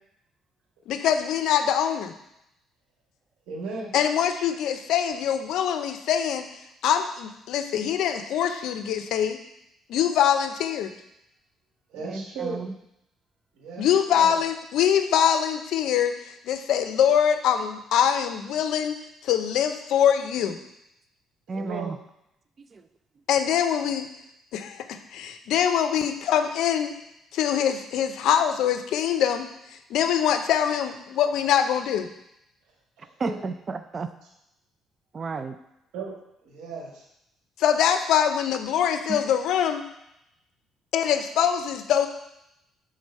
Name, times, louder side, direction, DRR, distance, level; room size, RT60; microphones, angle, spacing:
voice 1, 0.9-2.1 3.9-6.5 6.8-9.4 9.9-10.9 13.8-16.1 16.5-19.0 19.2-20.6 23.3-24.1 24.5-26.9 27.3-29.5 29.9-32.1 37.6-39.8 40.9-42.1, left 9 dB, 75° left, 8 dB, 0.5 m, -23 dB
voice 2, 3.5-3.9 11.9-12.6 13.6-14.4 21.5-21.9 33.0-33.4 35.9-36.1 36.4-37.0, right 4 dB, 90° right, -2 dB, 1.4 m, -35 dB
voice 3, 12.0-12.7 21.5-22.0 22.7-22.8 33.2-34.1 35.1-35.6 39.1-39.2, right 4 dB, 35° right, 9 dB, 0.3 m, -32 dB
4.9 x 3.8 x 5.3 m, 0.82 s
cardioid pair, 105°, 0 cm